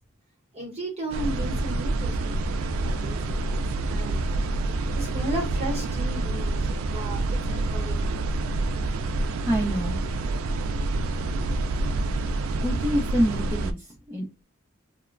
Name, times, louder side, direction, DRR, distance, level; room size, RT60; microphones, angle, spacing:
voice 1, 0.5-4.6 4.9-8.3, right 1 dB, 30° right, 1.0 m, -36 dB
sound 1, 1.1-13.7, right 2 dB, 90° right, 0.3 m, -27 dB
voice 2, 9.4-10.0 12.6-14.4, equal, 10° right, 0.5 m, -27 dB
2.9 x 2.1 x 2.4 m
head